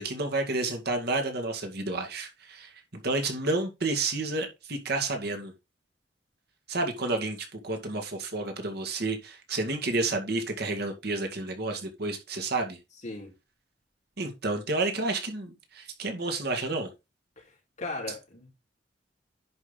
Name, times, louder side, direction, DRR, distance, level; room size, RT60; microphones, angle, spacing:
voice 1, 0.0-5.5 6.7-12.8 14.2-16.9, right 2 dB, 60° right, 2.0 m, -30 dB
voice 2, 17.4-18.5, left 2 dB, 40° left, 4.8 m, -38 dB
10.5 x 5.4 x 3.9 m
head